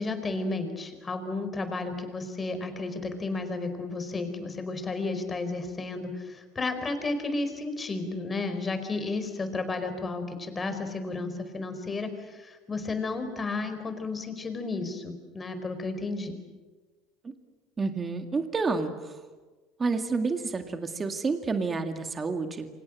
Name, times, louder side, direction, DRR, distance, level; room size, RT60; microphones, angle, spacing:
voice 1, 0.0-16.4, left 3 dB, 20° left, 8 dB, 4.6 m, -32 dB
voice 2, 17.8-19.2 19.8-22.7, right 4 dB, 20° right, 6 dB, 2.2 m, -29 dB
28.5 x 25.0 x 7.7 m, 1.2 s
supercardioid pair, 125°, 0 cm